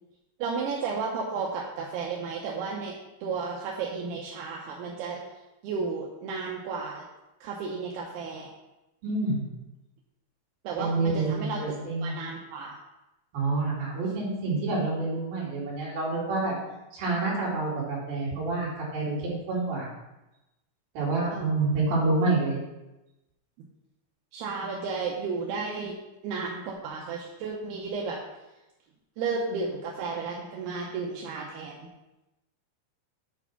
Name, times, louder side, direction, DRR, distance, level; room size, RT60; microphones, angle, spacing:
voice 1, 0.4-2.9 3.2-5.2 5.6-7.0 7.4-8.5 10.6-11.6 12.0-12.8 21.3-21.5 24.3-26.0 26.2-28.2 29.2-31.9, right 4 dB, 75° right, -3 dB, 2.6 m, -33 dB
voice 2, 9.0-9.5 10.8-12.1 13.3-16.5 16.9-19.9 20.9-22.6, right 3 dB, 55° right, -6 dB, 4.2 m, -28 dB
8.4 x 4.8 x 5.9 m, 0.98 s
omnidirectional pair, 5.3 m